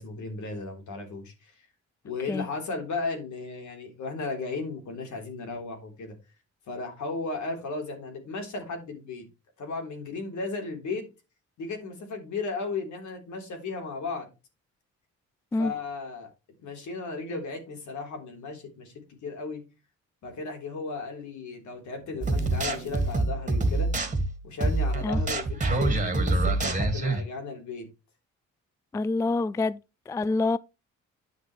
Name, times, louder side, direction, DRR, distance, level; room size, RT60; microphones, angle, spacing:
voice 1, 0.0-1.5 2.0-6.2 6.7-9.3 9.6-11.0 11.6-14.3 15.6-16.3 16.6-19.6 20.2-23.9 24.4-27.9, left 3 dB, 75° left, 3.7 m, -35 dB
sound 1, 22.2-27.2, right 2 dB, 25° right, 2.1 m, -26 dB
voice 2, 28.9-29.8 30.1-30.6, left 3 dB, 10° left, 0.3 m, -26 dB
9.9 x 6.4 x 3.1 m
cardioid pair, 90°, 30 cm